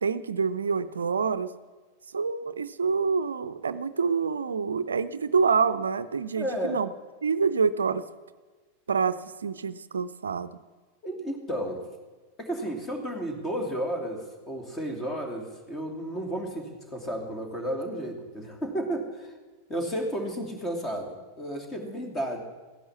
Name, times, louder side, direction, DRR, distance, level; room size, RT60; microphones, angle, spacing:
voice 1, 0.0-1.5 2.1-6.9 7.2-8.0 8.9-10.6, right 5 dB, 70° right, 14 dB, 0.5 m, -27 dB
voice 2, 6.4-6.8 11.0-11.8 12.4-19.3 19.7-22.4, equal, 20° left, 4 dB, 2.9 m, -32 dB
15.5 x 11.0 x 7.3 m, 1.3 s
figure-of-eight pair, 90°, 0 cm